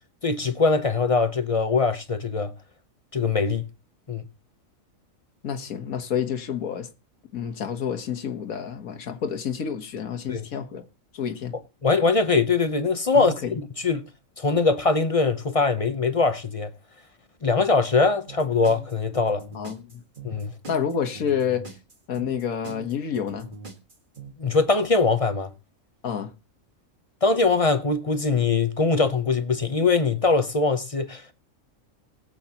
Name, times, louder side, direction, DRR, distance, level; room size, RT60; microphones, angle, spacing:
voice 1, 0.2-2.5 3.1-3.7 4.1-4.3 10.3-10.5 11.8-13.3 13.8-14.0 14.4-16.7 17.4-19.5 20.2-20.5 24.4-25.5 27.2-31.3, left 4 dB, 35° left, 0.6 m, -22 dB
voice 2, 5.4-6.9 7.3-10.8 11.1-11.5 13.1-13.6 19.5-20.0 20.7-21.7 22.1-23.5 26.0-26.3, left 8 dB, 90° left, 1.7 m, -29 dB
sound 1, 18.3-24.3, right 3 dB, 35° right, 1.9 m, -42 dB
20.5 x 8.1 x 2.9 m
omnidirectional pair, 1.4 m